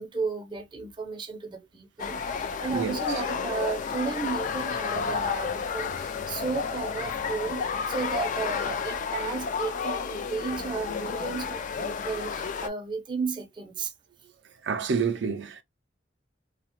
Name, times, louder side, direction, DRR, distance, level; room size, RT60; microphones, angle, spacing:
voice 1, 0.0-13.9, right 4 dB, 25° right, 0.5 m, -34 dB
sound 1, 2.0-12.7, left 6 dB, 45° left, 0.3 m, -31 dB
voice 2, 14.6-15.6, right 6 dB, 75° right, 0.4 m, -28 dB
2.8 x 2.1 x 2.9 m
head